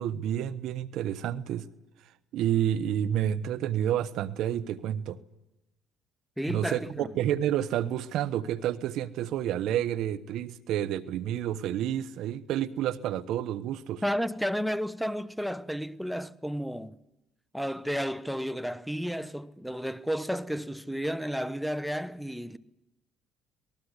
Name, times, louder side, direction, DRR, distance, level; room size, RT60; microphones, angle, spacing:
voice 1, 0.0-1.7 2.3-5.2 6.5-14.0, right 11 dB, 70° right, 1.1 m, -29 dB
voice 2, 6.4-7.1 14.0-16.9 17.5-22.6, equal, ahead, 1.0 m, -32 dB
25.5 x 19.0 x 8.2 m
supercardioid pair, 80°, 0 cm